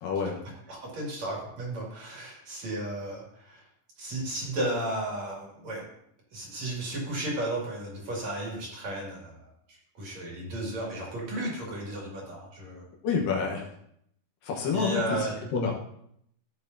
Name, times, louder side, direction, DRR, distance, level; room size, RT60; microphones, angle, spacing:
voice 1, 0.0-0.4 13.0-13.7 14.4-15.7, left 5 dB, 70° left, -1 dB, 2.6 m, -28 dB
voice 2, 0.7-3.6 4.0-5.8 6.3-9.5 10.0-12.9 14.7-15.3, right 1 dB, 50° right, -3 dB, 3.2 m, -34 dB
15.0 x 6.7 x 2.7 m, 0.72 s
omnidirectional pair, 4.4 m